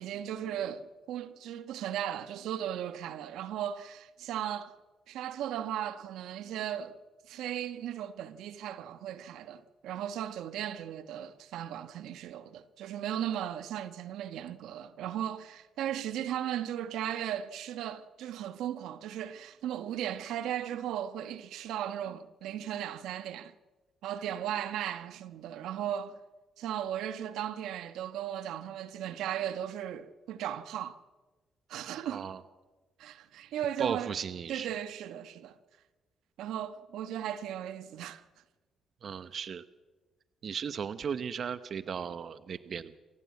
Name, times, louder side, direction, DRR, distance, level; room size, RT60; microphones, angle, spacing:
voice 1, 0.0-4.7 5.1-7.0 7.2-23.5 24.0-26.2 26.6-31.0 31.7-32.3 33.0-34.1 34.5-35.6 36.4-38.2, right 10 dB, 85° right, 1.2 m, -36 dB
voice 2, 32.1-32.4 33.8-34.7 39.0-39.6 40.4-43.0, right 7 dB, 55° right, 1.0 m, -36 dB
28.0 x 15.5 x 8.5 m
cardioid pair, 90°, 0 cm